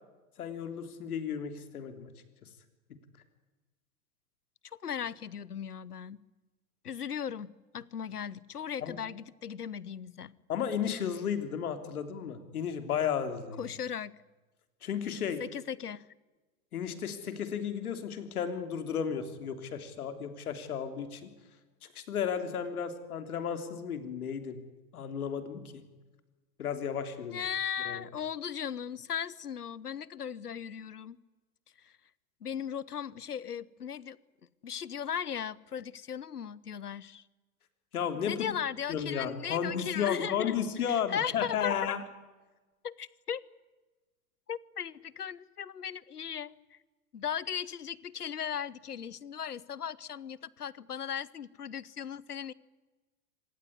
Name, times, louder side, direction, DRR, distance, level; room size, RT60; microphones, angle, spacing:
voice 1, 0.4-2.1 8.8-9.0 10.5-13.6 14.8-15.4 16.7-21.3 22.0-24.6 24.9-25.8 26.6-27.4 27.9-28.0 37.9-38.5 38.9-42.0, left 8 dB, 75° left, 8 dB, 3.4 m, -33 dB
voice 2, 4.8-6.2 6.8-10.3 13.6-14.1 15.4-16.0 27.3-31.2 31.8-31.9 32.4-34.2 34.6-37.2 38.3-40.5 40.8-41.9 42.8-43.4 44.5-46.8 47.1-52.5, left 8 dB, 90° left, 22 dB, 1.0 m, -37 dB
25.5 x 19.0 x 9.6 m, 1.2 s
hypercardioid pair, 95°, 44 cm